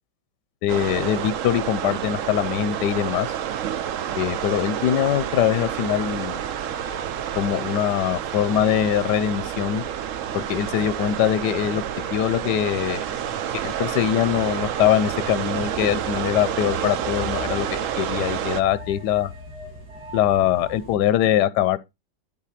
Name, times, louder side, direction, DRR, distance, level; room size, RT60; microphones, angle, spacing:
voice 1, 0.6-3.3 4.2-6.4 7.4-9.8 10.3-11.8 12.1-13.0 13.6-19.3 20.1-21.8, left 11 dB, 70° left, 1.1 m, -22 dB
sound 1, 0.7-18.6, right 10 dB, 85° right, 0.7 m, -29 dB
sound 2, 1.4-17.9, equal, 35° right, 2.6 m, -51 dB
sound 3, 5.0-21.0, left 1 dB, 55° right, 4.3 m, -42 dB
9.8 x 4.2 x 5.7 m
omnidirectional pair, 2.1 m